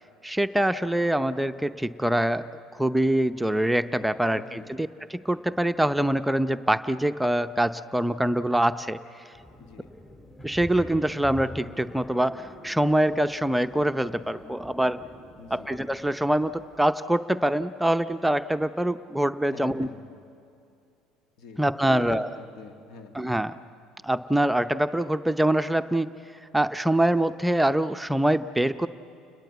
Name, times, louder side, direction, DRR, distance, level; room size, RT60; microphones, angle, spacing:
voice 1, 0.2-2.5 2.7-9.0 10.4-15.0 15.5-19.9 21.6-22.3 23.1-23.6 24.0-26.1 26.5-28.9, right 1 dB, 5° right, 10 dB, 0.7 m, -24 dB
voice 2, 4.3-4.7 9.6-9.9 15.4-15.7 19.5-20.2 21.4-21.6 21.9-23.2, left 5 dB, 65° left, 6 dB, 2.2 m, -44 dB
sound 1, 9.3-16.8, left 1 dB, 20° left, 4.1 m, -45 dB
29.5 x 20.5 x 8.1 m, 2.5 s
hypercardioid pair, 70°, 0 cm